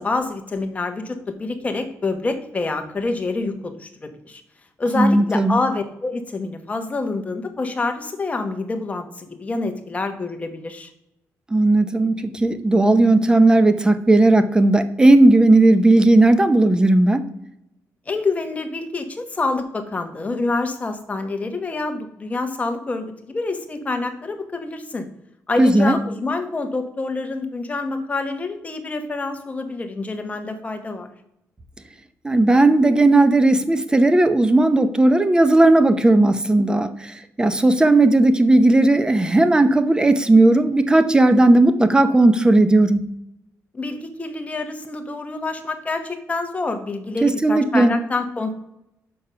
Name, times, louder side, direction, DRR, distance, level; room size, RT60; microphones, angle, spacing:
voice 1, 0.0-4.4 4.8-10.9 18.1-25.1 25.5-31.1 43.7-48.5, left 3 dB, 25° left, 6 dB, 1.1 m, -27 dB
voice 2, 4.9-5.6 11.5-17.2 25.6-25.9 32.2-43.1 47.2-47.9, right 2 dB, 15° right, 11 dB, 0.6 m, -15 dB
6.7 x 5.3 x 5.6 m, 0.81 s
cardioid pair, 125°, 6 cm